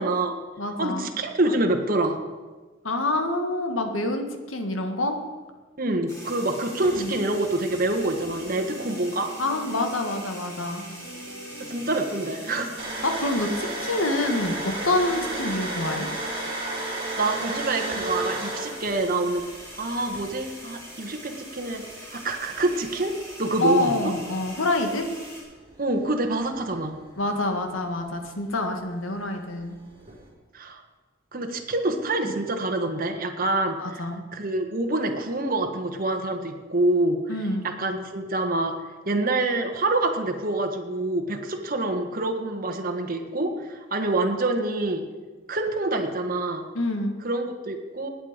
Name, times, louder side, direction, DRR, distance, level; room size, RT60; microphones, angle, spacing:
voice 1, 0.0-0.4 0.8-2.2 5.8-9.3 11.6-12.9 17.2-19.4 19.8-21.8 22.1-23.1 23.4-24.1 25.8-26.9 30.5-30.8 31.3-37.4 37.6-38.7 39.0-45.0 45.5-46.6 47.2-48.1, right 2 dB, 45° right, 4 dB, 1.6 m, -26 dB
voice 2, 0.6-1.1 2.8-5.2 7.0-7.1 9.4-10.8 13.0-16.1 23.6-25.1 27.2-29.8 33.8-34.2 37.3-37.6 46.8-47.1, left 2 dB, 80° left, 5 dB, 1.8 m, -26 dB
sound 1, 6.1-25.4, equal, 15° left, 4.7 m, -42 dB
sound 2, 8.0-15.5, right 1 dB, 50° left, 3.0 m, -45 dB
sound 3, 12.8-20.4 20.9-21.0 22.5-23.0 24.1-28.2 28.5-28.8 29.1-30.3, right 2 dB, 30° right, 4.0 m, -33 dB
20.0 x 9.0 x 5.2 m, 1.3 s
head